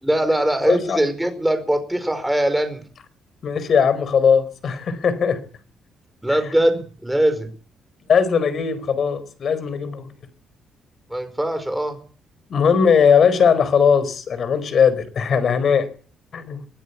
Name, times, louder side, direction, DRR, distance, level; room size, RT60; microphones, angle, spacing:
voice 1, 0.0-2.8 6.2-7.5 11.1-12.0, right 1 dB, 5° right, 4.7 m, -21 dB
voice 2, 0.6-1.0 3.4-5.4 6.3-6.4 8.1-10.1 12.5-15.9 16.3-16.6, left 6 dB, 40° left, 4.6 m, -19 dB
22.5 x 15.5 x 8.2 m
cardioid pair, 170°, 0 cm